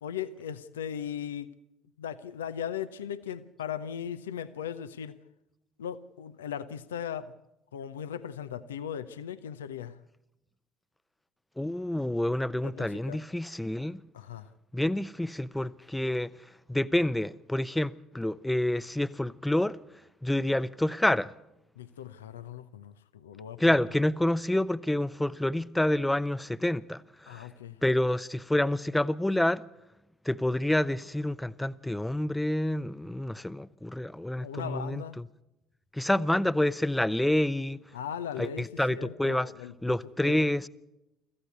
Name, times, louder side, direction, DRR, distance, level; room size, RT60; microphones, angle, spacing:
voice 1, 0.0-1.6 2.0-5.2 5.8-7.3 7.7-10.0 12.6-13.2 14.1-14.5 21.8-23.7 27.3-27.8 34.4-35.2 37.9-40.5, left 9 dB, 80° left, 0.7 m, -38 dB
voice 2, 11.6-14.0 14.7-16.3 16.7-19.8 20.2-21.3 23.6-27.5 27.8-29.6 30.2-35.0 35.9-37.8 38.4-39.5 39.8-40.7, left 1 dB, 5° left, 0.7 m, -28 dB
24.5 x 14.5 x 8.3 m
figure-of-eight pair, 55°, 0 cm